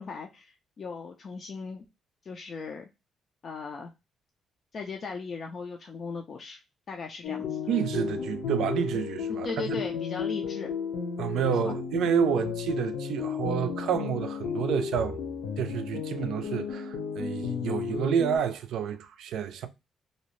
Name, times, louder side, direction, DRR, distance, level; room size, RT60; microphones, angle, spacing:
voice 1, 0.0-1.8 2.3-2.9 3.4-3.9 4.7-6.6 6.9-7.6 9.3-10.7 11.4-11.7, left 5 dB, 50° left, 0.4 m, -38 dB
sound 1, 7.2-18.4, left 6 dB, 80° left, 0.8 m, -33 dB
voice 2, 7.7-9.8 11.2-15.2 15.6-19.7, right 8 dB, 80° right, 0.4 m, -29 dB
2.7 x 2.0 x 2.9 m
cardioid pair, 90°, 0 cm